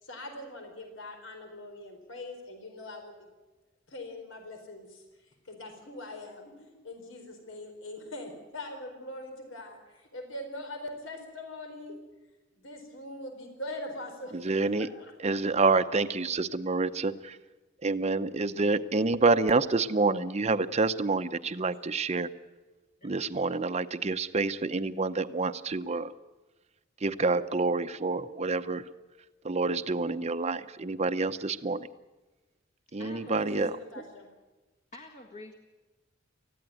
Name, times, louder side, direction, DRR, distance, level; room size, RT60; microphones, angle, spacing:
voice 1, 0.0-3.3 3.9-5.0 5.4-11.9 12.5-14.3 14.8-15.1 33.3-34.2, left 1 dB, 80° left, 5 dB, 4.3 m, -42 dB
voice 2, 14.3-14.9 15.2-17.4 17.8-22.3 23.0-26.1 27.0-28.8 29.4-31.9 32.9-33.7, right 3 dB, 35° right, 10 dB, 0.7 m, -28 dB
voice 3, 33.0-34.1 34.9-35.5, left 2 dB, 40° left, 1 dB, 1.9 m, -44 dB
20.0 x 14.5 x 9.2 m, 1.2 s
head